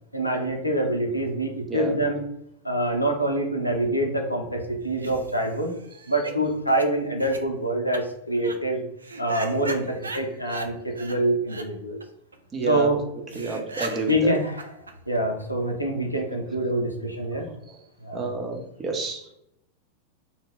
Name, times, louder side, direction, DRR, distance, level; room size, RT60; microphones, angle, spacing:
voice 1, 0.1-2.2 2.6-5.7 6.1-8.8 9.2-12.0 12.7-13.0 14.1-14.7 15.1-17.5 18.0-18.3, right 1 dB, 85° left, 2 dB, 0.5 m, -25 dB
sound 1, 4.8-6.4 6.7-6.8 7.2-7.4 7.9-8.0 8.3-8.6 9.0-10.7 11.0-11.2 11.5-11.7 12.0-12.1 12.3-12.4 12.7-12.8 13.0-13.1 13.3-15.4, right 3 dB, 75° right, 0.3 m, -37 dB
voice 2, 12.5-12.9 13.4-14.3 18.1-19.2, right 4 dB, 20° right, 2 dB, 0.6 m, -29 dB
2.2 x 2.0 x 3.4 m, 0.81 s
figure-of-eight pair, 90°, 0 cm